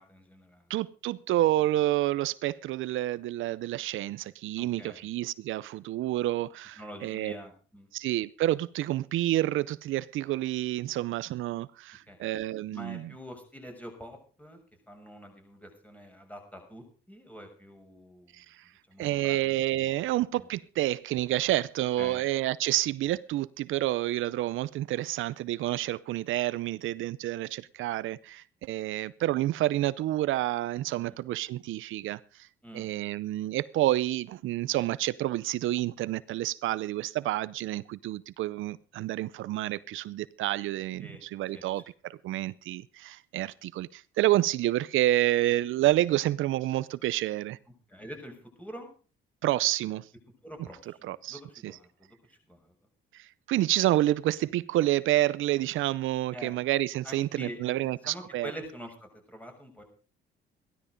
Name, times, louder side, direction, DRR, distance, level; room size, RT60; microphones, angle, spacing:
voice 1, 0.0-0.7 4.6-5.1 6.8-7.9 12.1-12.2 12.7-14.6 14.9-18.3 18.9-19.4 22.0-22.2 31.0-31.1 32.6-32.9 41.0-41.2 41.5-41.6 47.9-48.9 50.4-52.7 56.3-56.5 57.0-59.8, equal, 5° left, 6.3 m, -45 dB
voice 2, 0.7-7.3 7.9-13.1 18.3-18.6 19.0-32.5 32.7-47.6 49.4-50.1 51.0-51.8 53.1-58.5, right 15 dB, 80° right, 0.6 m, -29 dB
15.5 x 12.5 x 5.2 m
cardioid pair, 90°, 20 cm